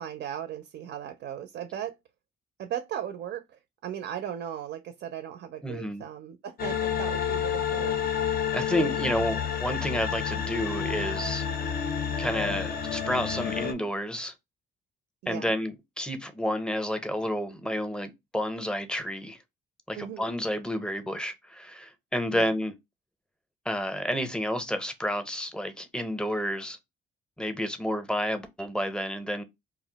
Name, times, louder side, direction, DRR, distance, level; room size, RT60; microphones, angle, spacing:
voice 1, 0.0-2.0 2.6-8.0 8.7-8.9 15.2-15.5 19.9-20.3 22.3-22.5, right 10 dB, 65° right, 0.4 m, -37 dB
voice 2, 5.6-6.0 8.5-11.4 12.2-14.3 15.3-19.4 19.9-22.7 23.7-26.8 27.4-29.4, equal, 5° left, 0.5 m, -30 dB
sound 1, 6.6-13.7, left 8 dB, 50° left, 0.5 m, -29 dB
2.4 x 2.0 x 3.8 m
cardioid pair, 90°, 20 cm